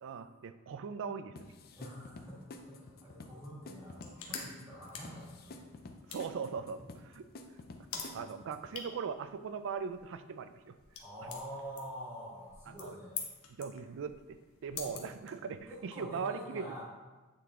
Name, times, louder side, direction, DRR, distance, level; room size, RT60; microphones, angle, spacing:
voice 1, 0.0-1.4 6.1-7.3 8.1-10.8 12.7-13.0 13.6-14.2 14.6-16.7, right 6 dB, 60° right, 11 dB, 0.4 m, -40 dB
sound 1, 1.4-8.7, left 2 dB, 45° left, 0.5 m, -51 dB
voice 2, 1.8-2.4 2.7-5.7 8.1-8.5 11.0-13.2 14.8-15.1 15.7-16.8, equal, 10° right, -8 dB, 1.5 m, -46 dB
sound 2, 3.7-15.8, left 6 dB, 70° left, 1.0 m, -48 dB
8.4 x 3.9 x 3.6 m, 1.2 s
head